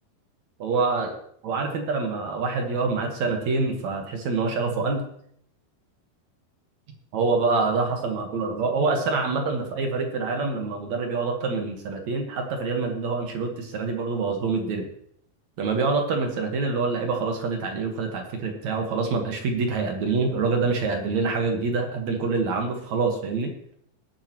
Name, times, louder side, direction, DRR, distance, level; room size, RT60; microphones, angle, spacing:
voice 1, 0.6-1.2 1.4-5.0 7.1-14.9 15.6-23.5, right 4 dB, 55° right, 3 dB, 2.4 m, -26 dB
19.0 x 9.7 x 3.0 m, 0.68 s
omnidirectional pair, 4.4 m